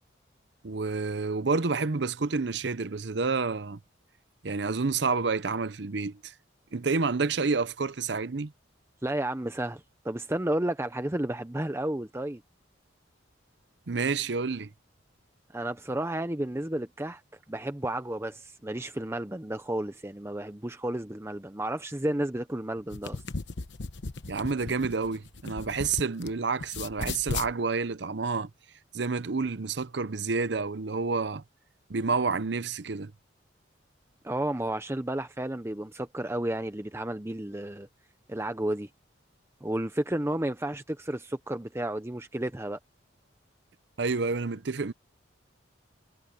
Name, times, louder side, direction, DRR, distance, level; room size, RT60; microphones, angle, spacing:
voice 1, 0.6-3.8 4.4-6.3 6.7-8.5 13.9-14.7 24.3-28.5 28.9-31.4 31.9-33.1 44.0-44.9, right 4 dB, 60° right, 0.7 m, -29 dB
voice 2, 9.0-12.4 15.5-17.2 17.5-23.2 34.2-37.9 38.3-38.9 39.6-42.8, right 1 dB, 15° right, 0.7 m, -32 dB
sound 1, 22.8-26.3 26.6-27.5, left 3 dB, 65° left, 1.0 m, -36 dB
head